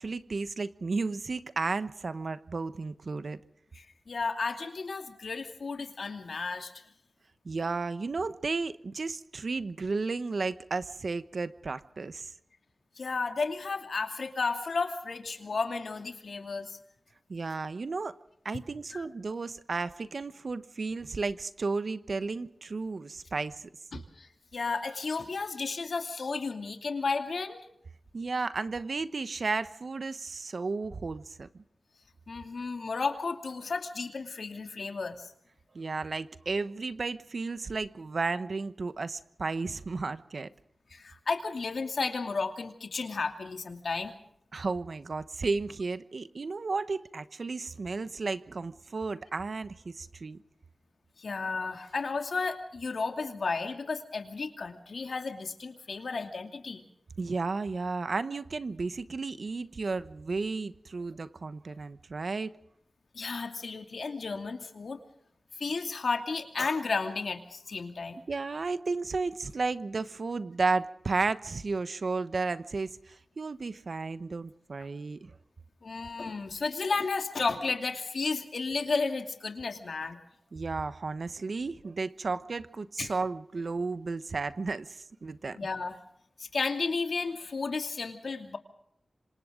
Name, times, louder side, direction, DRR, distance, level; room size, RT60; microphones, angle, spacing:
voice 1, 0.0-3.4 7.4-12.3 17.3-18.2 18.4-23.7 28.1-31.6 35.7-40.5 44.5-50.4 57.2-62.5 68.3-75.3 80.5-85.6, right 4 dB, 65° right, 1.0 m, -33 dB
voice 2, 3.7-6.8 13.0-16.8 18.9-19.1 23.9-27.6 32.3-35.3 40.9-44.1 51.2-56.8 63.1-65.0 65.6-68.2 75.8-80.2 83.0-83.1 85.6-86.0 86.4-88.6, left 4 dB, 75° left, 2.6 m, -33 dB
26.5 x 26.5 x 3.8 m
wide cardioid pair, 70°, 0 cm